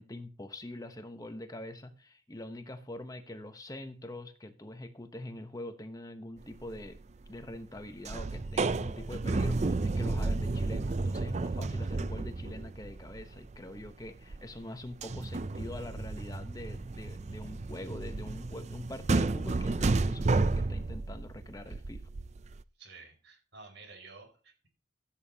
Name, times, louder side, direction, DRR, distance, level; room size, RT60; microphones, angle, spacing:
voice 1, 0.0-7.0 7.3-22.0, left 1 dB, 20° left, 9 dB, 0.9 m, -44 dB
sound 1, 6.6-7.0 7.3-7.8 8.0-14.6 14.9-22.6, right 3 dB, 35° right, 0.4 m, -32 dB
voice 2, 22.8-24.7, right 3 dB, 70° right, 4 dB, 5.1 m, -52 dB
16.0 x 8.7 x 2.9 m, 0.38 s
head